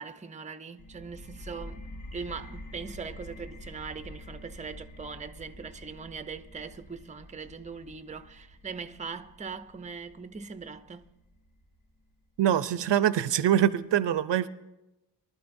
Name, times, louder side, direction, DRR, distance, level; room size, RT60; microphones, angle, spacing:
voice 1, 0.0-1.8 2.1-11.1, right 5 dB, 15° right, 0.5 m, -41 dB
sound 1, 0.8-12.2, left 1 dB, 90° left, 2.5 m, -47 dB
voice 2, 12.4-14.5, right 10 dB, 70° right, 0.6 m, -24 dB
23.0 x 12.0 x 2.6 m
cardioid pair, 85°, 45 cm